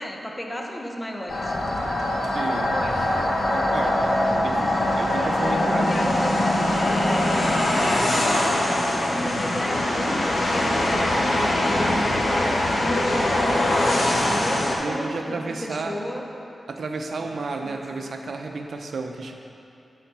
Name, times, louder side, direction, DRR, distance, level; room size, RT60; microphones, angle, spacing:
voice 1, 0.0-1.6 2.5-3.1 5.1-6.5 7.0-16.2 17.2-17.3 17.6-17.8, equal, 15° left, 0 dB, 1.0 m, -34 dB
sound 1, 1.3-14.7, left 1 dB, 60° left, 1.2 m, -22 dB
voice 2, 2.3-2.8 3.5-4.2 4.4-6.1 14.8-16.0 16.7-19.3, right 3 dB, 75° right, 3 dB, 0.7 m, -32 dB
10.5 x 4.1 x 5.5 m, 2.7 s
wide cardioid pair, 80°, 0 cm